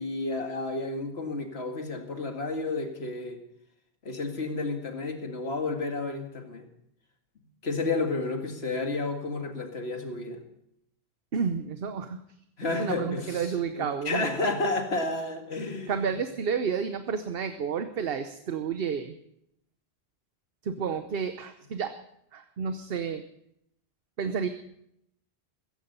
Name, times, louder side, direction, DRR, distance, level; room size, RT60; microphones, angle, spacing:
voice 1, 0.0-3.4 4.0-6.7 7.6-10.4 12.6-16.0, left 3 dB, 80° left, 4 dB, 2.2 m, -31 dB
voice 2, 11.3-12.2 12.7-14.4 15.9-19.2 20.6-22.0 22.3-23.2 24.2-24.5, right 6 dB, 65° right, 9 dB, 1.0 m, -31 dB
15.5 x 15.0 x 5.4 m, 0.75 s
omnidirectional pair, 1.1 m